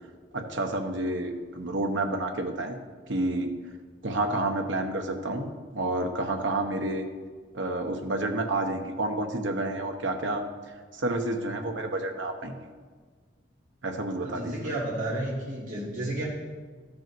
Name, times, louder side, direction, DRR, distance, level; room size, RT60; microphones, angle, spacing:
voice 1, 0.3-2.8 3.1-3.5 4.0-7.1 7.5-10.4 10.9-12.6 13.8-14.7, right 2 dB, 70° right, 4 dB, 0.9 m, -29 dB
voice 2, 14.2-16.2, right 1 dB, 40° right, -7 dB, 3.0 m, -32 dB
12.5 x 5.4 x 4.6 m, 1.5 s
head